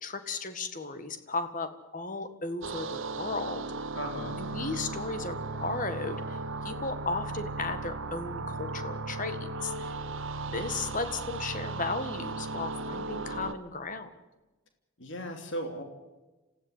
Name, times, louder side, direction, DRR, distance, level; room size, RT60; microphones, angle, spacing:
voice 1, 0.0-3.6 4.4-6.4 6.6-9.9 10.5-14.1, left 3 dB, 35° left, 9 dB, 1.7 m, -35 dB
sound 1, 2.6-13.5, right 3 dB, 60° right, 1.0 m, -36 dB
voice 2, 3.9-4.4 15.0-15.8, equal, 55° left, 4 dB, 3.0 m, -36 dB
27.0 x 15.5 x 8.4 m, 1.1 s
head